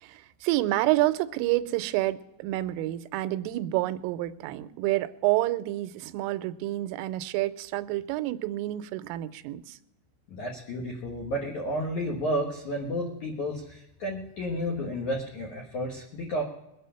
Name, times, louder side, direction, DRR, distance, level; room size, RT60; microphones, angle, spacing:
voice 1, 0.0-9.8, right 16 dB, 90° right, 13 dB, 3.2 m, -28 dB
voice 2, 10.3-16.4, equal, 70° left, -2 dB, 1.8 m, -32 dB
22.0 x 8.3 x 5.7 m, 0.90 s
omnidirectional pair, 5.7 m